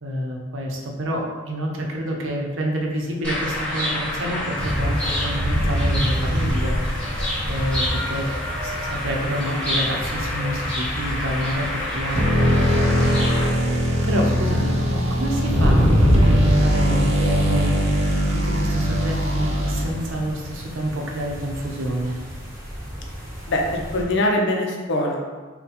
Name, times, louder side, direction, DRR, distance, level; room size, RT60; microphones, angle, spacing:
voice 1, 0.0-6.8 7.5-8.3 8.6-13.1 14.0-17.7 18.3-22.2, equal, 70° right, 0 dB, 0.7 m, -28 dB
sound 1, 3.2-13.5, left 1 dB, 5° left, 1.2 m, -28 dB
sound 2, 4.6-24.0, equal, 15° right, 1.1 m, -27 dB
sound 3, 12.1-20.1, equal, 35° right, 0.5 m, -21 dB
voice 2, 23.5-25.2, left 1 dB, 65° left, 1 dB, 0.6 m, -22 dB
4.1 x 2.2 x 4.1 m, 1.4 s
head